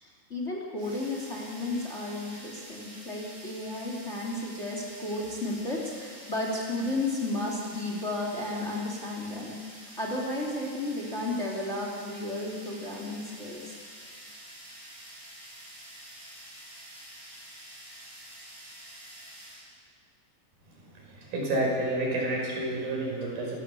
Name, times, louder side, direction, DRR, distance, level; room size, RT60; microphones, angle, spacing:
voice 1, 0.0-9.5 10.0-13.8, left 2 dB, 20° left, -1 dB, 2.8 m, -33 dB
sound 1, 0.8-19.7, right 1 dB, 35° right, 7.1 m, -48 dB
voice 2, 20.8-23.6, right 1 dB, 80° right, -2 dB, 6.9 m, -30 dB
29.5 x 14.0 x 7.0 m, 2.1 s
omnidirectional pair, 4.1 m